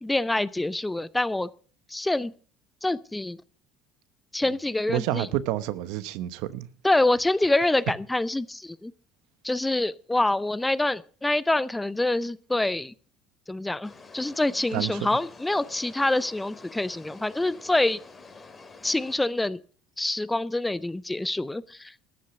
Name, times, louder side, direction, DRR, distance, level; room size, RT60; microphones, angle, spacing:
voice 1, 0.0-1.5 1.9-2.3 2.8-3.4 4.3-5.3 6.8-8.9 9.4-12.9 13.5-18.0 18.8-19.6 20.0-22.0, left 2 dB, 10° left, 0.6 m, -26 dB
voice 2, 4.9-6.7 14.7-15.1, right 14 dB, 75° right, 0.9 m, -29 dB
sound 1, 13.8-19.2, left 4 dB, 25° left, 2.6 m, -48 dB
14.0 x 8.4 x 6.9 m
supercardioid pair, 105°, 0 cm